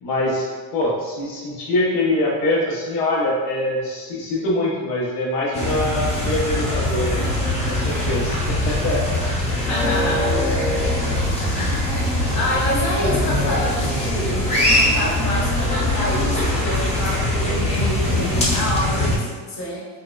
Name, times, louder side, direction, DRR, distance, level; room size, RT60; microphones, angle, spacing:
voice 1, 0.0-7.2 7.6-9.0 17.6-17.7, left 1 dB, 85° left, -4 dB, 0.9 m, -24 dB
sound 1, 5.5-19.2, left 1 dB, 15° left, 0.6 m, -22 dB
voice 2, 9.5-10.5 11.5-19.8, equal, 40° left, -5 dB, 1.0 m, -27 dB
3.7 x 2.0 x 2.2 m, 1.5 s
cardioid pair, 110°, 43 cm